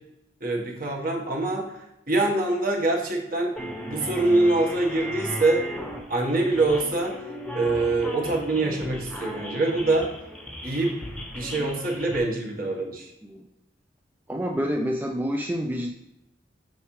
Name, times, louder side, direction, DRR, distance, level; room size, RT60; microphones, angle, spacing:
voice 1, 0.4-1.7 2.1-3.5 3.9-5.6 6.1-7.1 7.5-10.1 10.6-10.9 11.3-13.1, right 2 dB, 50° right, 0 dB, 1.4 m, -24 dB
sound 1, 3.6-12.2, equal, 5° left, 0.9 m, -36 dB
voice 2, 14.3-15.9, equal, 10° right, 1 dB, 0.4 m, -28 dB
6.2 x 5.8 x 3.2 m, 0.89 s
head